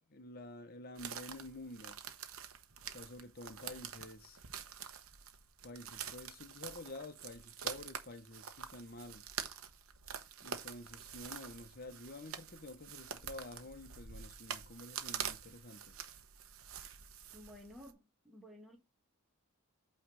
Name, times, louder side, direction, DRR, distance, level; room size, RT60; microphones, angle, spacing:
voice 1, 0.1-2.0 2.9-4.4 5.6-9.2 10.4-16.0, left 2 dB, 45° left, 1.1 m, -49 dB
sound 1, 1.0-17.9, right 8 dB, 70° right, 1.1 m, -46 dB
voice 2, 17.3-18.8, left 1 dB, ahead, 1.4 m, -54 dB
8.7 x 3.3 x 4.8 m
head